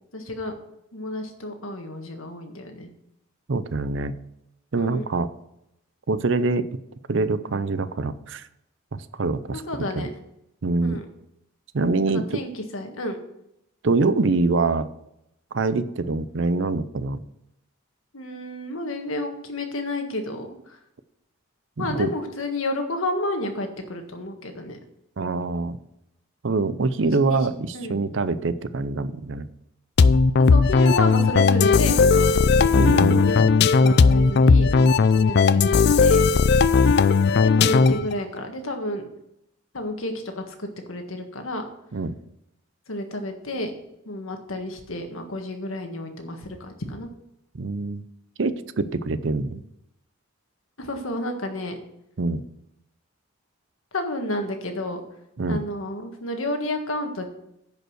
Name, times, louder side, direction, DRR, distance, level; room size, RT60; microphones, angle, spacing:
voice 1, 0.1-0.5 0.9-2.9 4.7-5.0 9.5-10.1 10.8-11.0 12.1-13.2 18.1-20.8 21.8-24.8 27.0-27.5 27.7-27.9 30.5-32.4 33.1-33.4 33.8-36.2 37.4-39.0 39.7-41.6 42.9-43.7 44.0-47.1 50.8-51.8 53.9-55.0 55.5-57.3, left 1 dB, 85° left, 5 dB, 1.6 m, -31 dB
voice 2, 3.5-4.1 4.7-5.3 6.1-6.7 7.1-8.5 8.9-9.6 10.0-10.1 10.6-11.0 11.7-12.4 13.8-14.9 15.5-17.2 21.8-22.1 25.2-25.8 26.4-29.5 32.7-33.2 41.9-42.2 47.5-48.0 48.4-49.6 52.2-52.4 55.4-55.6, right 3 dB, 65° right, 14 dB, 0.6 m, -24 dB
sound 1, 30.0-38.1, left 4 dB, 55° left, 0.4 m, -17 dB
10.5 x 5.4 x 6.4 m, 0.81 s
head